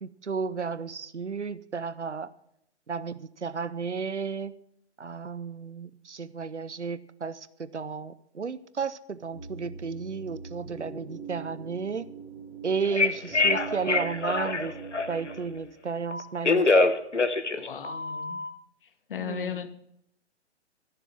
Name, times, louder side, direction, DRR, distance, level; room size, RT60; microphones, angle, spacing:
voice 1, 0.0-2.3 2.9-4.5 5.0-12.1 12.6-14.7 15.1-16.9 19.2-19.7, right 5 dB, 80° right, 15 dB, 0.8 m, -33 dB
sound 1, 9.3-15.6, right 5 dB, 10° right, 2.7 m, -42 dB
Telephone, 12.8-15.3 16.1-18.5, left 3 dB, 80° left, 1.2 m, -25 dB
voice 2, 17.5-18.4 19.1-19.7, left 8 dB, 50° left, 10 dB, 1.4 m, -36 dB
14.0 x 7.0 x 7.4 m, 0.75 s
figure-of-eight pair, 125°, 35 cm